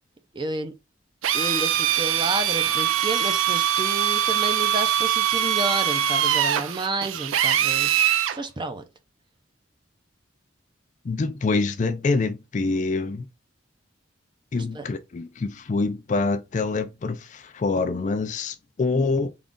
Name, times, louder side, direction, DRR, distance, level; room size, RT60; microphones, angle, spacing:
voice 1, 0.3-0.7 1.3-8.8 14.5-14.8, right 2 dB, 25° right, 0.5 m, -30 dB
Drill, 1.2-8.4, right 10 dB, 85° right, 0.4 m, -23 dB
voice 2, 11.0-13.3 14.5-19.3, left 3 dB, 40° left, 0.4 m, -25 dB
3.7 x 2.4 x 3.6 m
head